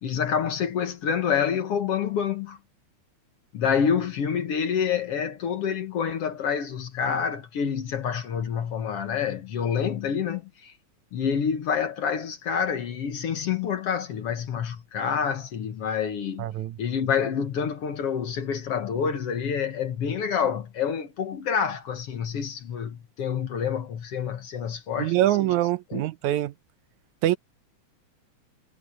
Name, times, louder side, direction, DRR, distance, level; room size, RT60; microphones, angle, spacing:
voice 1, 0.0-2.6 3.5-10.7 11.1-16.5 16.8-25.5 25.9-26.1, left 7 dB, 55° left, 2.0 m, -27 dB
voice 2, 16.4-16.8 25.0-26.5 27.2-27.4, right 14 dB, 75° right, 2.0 m, -24 dB
omnidirectional pair, 3.5 m